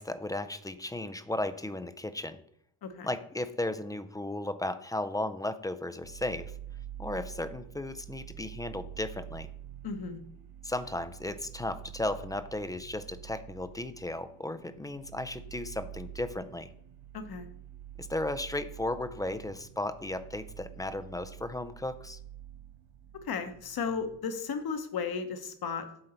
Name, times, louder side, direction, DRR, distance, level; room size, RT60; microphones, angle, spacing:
voice 1, 0.0-2.4 3.0-6.5 7.0-9.5 10.6-16.7 18.0-22.2, left 1 dB, 10° left, 10 dB, 0.4 m, -35 dB
voice 2, 2.8-3.1 9.8-10.2 17.1-17.5 23.1-26.0, left 5 dB, 50° left, 8 dB, 1.1 m, -35 dB
sound 1, 6.0-24.2, right 11 dB, 90° right, 0.6 m, -47 dB
7.8 x 3.8 x 4.3 m, 0.68 s
supercardioid pair, 60°, 48 cm